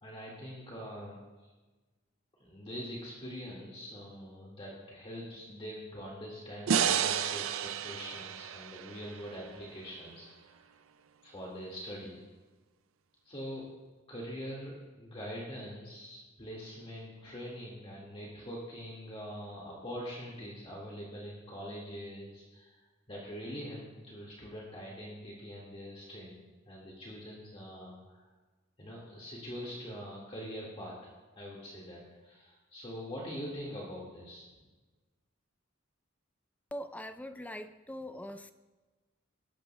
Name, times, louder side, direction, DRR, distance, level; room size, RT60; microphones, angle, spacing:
voice 1, 0.0-1.5 2.4-10.6 11.2-12.2 13.3-13.7 14.1-22.8 23.1-26.4 26.7-28.2 28.8-34.5, equal, 30° left, -4 dB, 1.8 m, -43 dB
sound 1, 6.7-9.9, right 8 dB, 85° right, 0.5 m, -32 dB
voice 2, 36.7-38.5, equal, 10° left, 10 dB, 0.4 m, -42 dB
20.0 x 12.0 x 2.2 m, 1.3 s
head